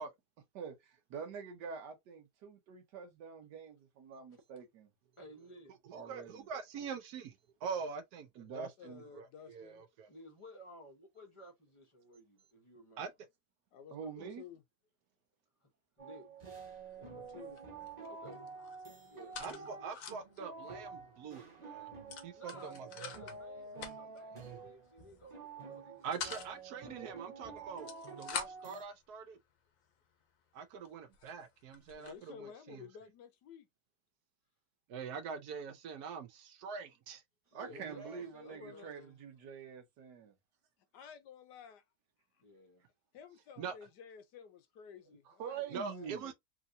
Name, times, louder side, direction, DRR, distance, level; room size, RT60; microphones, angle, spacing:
voice 1, 0.5-4.9 5.9-6.5 8.3-9.0 13.9-14.4 37.5-40.3 45.4-46.3, right 7 dB, 90° right, 1.5 m, -46 dB
voice 2, 5.2-5.7 10.1-13.1 15.6-15.7 16.0-16.3 18.0-18.4 19.1-19.9 22.3-26.4 37.5-39.2 42.4-42.9, equal, 25° left, 0.7 m, -56 dB
voice 3, 5.9-7.3 7.6-8.3 8.5-8.7 9.1-10.1 13.0-13.1 14.2-14.3 19.4-21.9 22.2-23.1 24.3-24.6 26.0-29.4 30.5-32.8 34.9-37.2 37.7-38.2 43.6-43.7 45.7-46.3, right 5 dB, 70° right, 1.2 m, -44 dB
voice 4, 8.8-9.8 13.7-14.6 17.0-17.6 31.9-33.7 37.5-38.9 40.9-41.8 43.1-46.3, left 7 dB, 90° left, 1.4 m, -53 dB
sound 1, 16.0-28.8, right 4 dB, 30° right, 1.0 m, -49 dB
sound 2, 16.6-17.0 17.2-18.1 18.3-20.4 20.8-20.9 21.1-21.3 22.1-23.4 23.7-24.2 25.0-25.3 25.7-26.5 27.6-28.8 29.5-29.6 30.2-30.3 30.8-30.9 31.1-32.2, left 6 dB, 60° left, 1.1 m, -45 dB
3.4 x 2.9 x 2.6 m
omnidirectional pair, 1.8 m